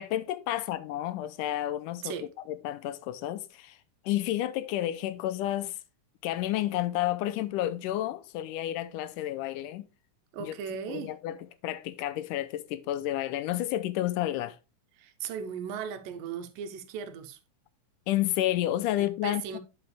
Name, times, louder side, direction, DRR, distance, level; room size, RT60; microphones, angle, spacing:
voice 1, 0.0-2.1 2.5-3.8 4.1-5.8 6.2-9.9 10.4-10.5 10.9-11.4 11.6-14.6 18.1-19.6, left 13 dB, 80° left, 2.1 m, -30 dB
voice 2, 10.3-11.1 15.0-17.4 19.2-19.6, right 7 dB, 85° right, 2.6 m, -37 dB
11.0 x 5.8 x 3.3 m
omnidirectional pair, 3.8 m